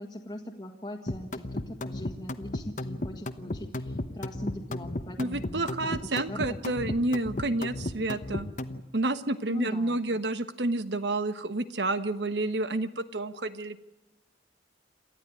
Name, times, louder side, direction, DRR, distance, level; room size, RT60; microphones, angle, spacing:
voice 1, 0.0-6.6 9.5-10.2, left 1 dB, 20° left, -1 dB, 1.6 m, -41 dB
sound 1, 1.1-8.8, left 1 dB, 45° left, 1.0 m, -34 dB
voice 2, 5.2-8.5 8.9-13.8, right 2 dB, 75° right, 11 dB, 1.2 m, -29 dB
28.0 x 13.5 x 9.9 m, 1.0 s
head